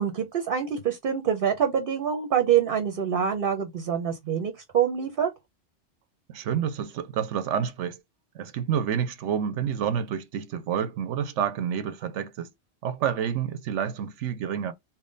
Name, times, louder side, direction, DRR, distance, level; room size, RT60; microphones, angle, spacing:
voice 1, 0.0-5.3, right 8 dB, 55° right, 0.8 m, -25 dB
voice 2, 6.3-8.0 8.3-12.5 12.8-14.7, right 8 dB, 80° right, 0.9 m, -29 dB
3.6 x 2.2 x 3.7 m
omnidirectional pair, 1.2 m